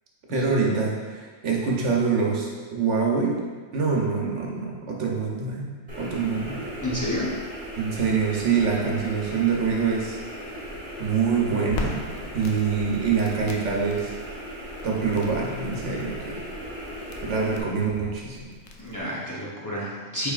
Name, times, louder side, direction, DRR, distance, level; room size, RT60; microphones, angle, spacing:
voice 1, 0.3-3.4 3.7-5.7 6.0-6.6 7.8-10.2 11.0-12.1 12.3-14.1 14.8-16.4 17.3-18.5, right 5 dB, 65° right, -2 dB, 1.1 m, -25 dB
sound 1, 5.9-17.6, equal, 35° right, 1.2 m, -37 dB
voice 2, 6.8-7.4 18.8-20.3, left 1 dB, 20° left, -7 dB, 0.5 m, -30 dB
Crackle, 11.7-19.0, left 3 dB, 65° left, 0.8 m, -40 dB
4.7 x 4.6 x 2.4 m, 1.5 s
omnidirectional pair, 1.4 m